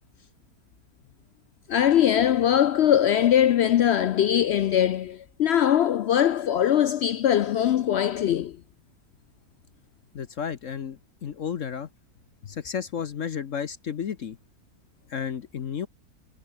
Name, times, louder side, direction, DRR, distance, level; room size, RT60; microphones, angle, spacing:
voice 1, 1.7-8.6, left 10 dB, 75° left, 0.6 m, -21 dB
voice 2, 10.1-11.9 12.4-14.4 15.1-15.9, left 7 dB, 55° left, 1.3 m, -32 dB
omnidirectional pair, 1.6 m